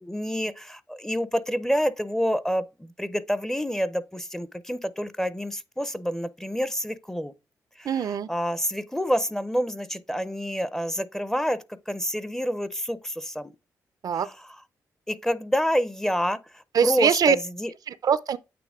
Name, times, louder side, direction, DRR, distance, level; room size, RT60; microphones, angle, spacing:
voice 1, 0.0-7.3 7.8-7.9 8.3-13.5 15.1-16.4 16.8-17.7, equal, 5° left, 0.5 m, -28 dB
voice 2, 7.8-8.3 14.0-14.3 16.7-17.4 17.9-18.4, right 7 dB, 60° right, 0.4 m, -22 dB
8.6 x 3.1 x 3.6 m
cardioid pair, 65°, 7 cm